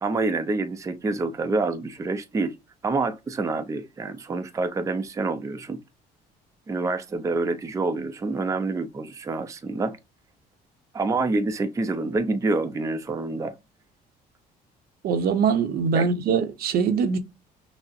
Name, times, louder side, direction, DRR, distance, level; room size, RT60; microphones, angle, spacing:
voice 1, 0.0-2.5 2.8-5.8 6.7-10.0 10.9-13.6 15.9-16.1, right 3 dB, 20° right, 0.5 m, -27 dB
voice 2, 15.0-17.2, right 6 dB, 65° right, 0.7 m, -23 dB
6.0 x 2.1 x 2.5 m
cardioid pair, 110°, 17 cm